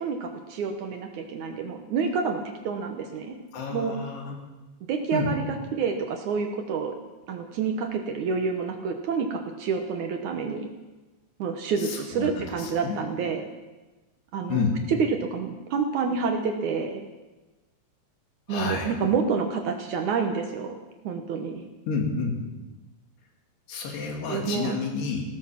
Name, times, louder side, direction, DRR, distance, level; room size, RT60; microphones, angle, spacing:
voice 1, 0.0-3.3 3.7-3.9 4.9-5.4 5.7-7.0 7.3-10.7 11.4-13.5 14.3-14.6 14.9-17.0 18.5-20.8 21.0-21.7 24.3-24.7, right 5 dB, 75° right, 4 dB, 1.8 m, -28 dB
voice 2, 3.5-4.4 5.1-5.3 11.8-13.0 14.5-14.8 18.5-18.9 21.9-22.4 23.7-25.2, left 4 dB, 70° left, 2 dB, 4.3 m, -29 dB
17.5 x 13.5 x 5.9 m, 1.2 s
omnidirectional pair, 5.0 m